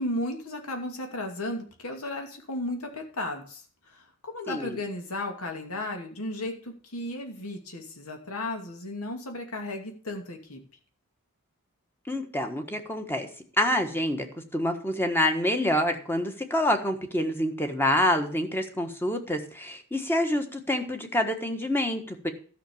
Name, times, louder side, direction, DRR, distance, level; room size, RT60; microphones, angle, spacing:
voice 1, 0.0-3.6 3.9-10.6, left 1 dB, 80° left, 3 dB, 2.5 m, -34 dB
voice 2, 4.5-4.8 12.1-13.3 13.6-14.3 14.5-22.3, left 1 dB, 10° left, 5 dB, 1.3 m, -27 dB
12.5 x 6.0 x 7.0 m, 0.43 s
head